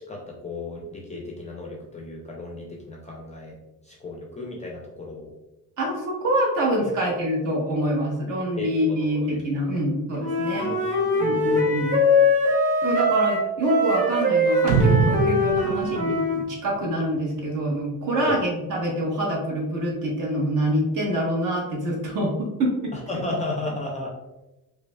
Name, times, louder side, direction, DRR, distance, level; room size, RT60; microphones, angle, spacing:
voice 1, 0.1-3.6 3.8-5.3 6.8-6.9 8.6-9.4 9.7-9.8 10.5-11.9 18.2-18.4 22.9-24.1, left 2 dB, 20° left, -1 dB, 0.4 m, -35 dB
voice 2, 5.8-10.7 11.2-12.0 12.8-22.9, equal, 55° right, -2 dB, 1.2 m, -25 dB
Wind instrument woodwind instrument, 10.2-16.4, left 1 dB, 20° right, 0.7 m, -22 dB
sound 1, 14.7-17.2, right 5 dB, 85° right, 0.6 m, -23 dB
4.8 x 2.4 x 2.2 m, 1.0 s
cardioid pair, 150°, 38 cm